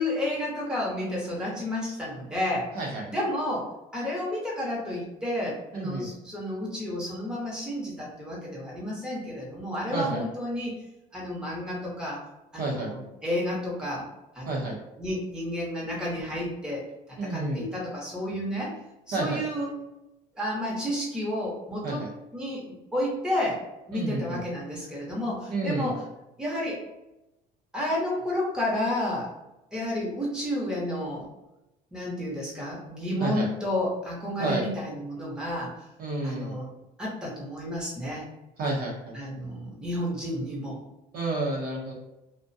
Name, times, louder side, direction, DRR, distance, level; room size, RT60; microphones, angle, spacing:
voice 1, 0.0-2.7 3.1-3.7 3.9-10.8 11.1-12.2 12.5-14.1 14.3-14.7 15.0-16.8 17.2-18.7 19.1-19.7 20.3-22.0 22.3-22.6 22.9-26.0 26.4-26.8 27.7-29.3 29.7-31.3 31.9-35.7 36.2-36.7 37.0-38.3 39.1-40.8, left 1 dB, 5° right, -5 dB, 0.9 m, -31 dB
voice 2, 2.7-3.1 5.7-6.1 9.9-10.3 12.6-12.9 14.5-14.8 17.2-17.6 19.1-19.4 21.8-22.1 23.9-24.4 25.5-25.9 33.2-33.5 34.4-34.7 36.0-36.5 38.6-39.1 41.1-41.9, right 2 dB, 60° right, -2 dB, 0.7 m, -30 dB
2.4 x 2.2 x 2.6 m, 0.95 s
supercardioid pair, 95°, 17 cm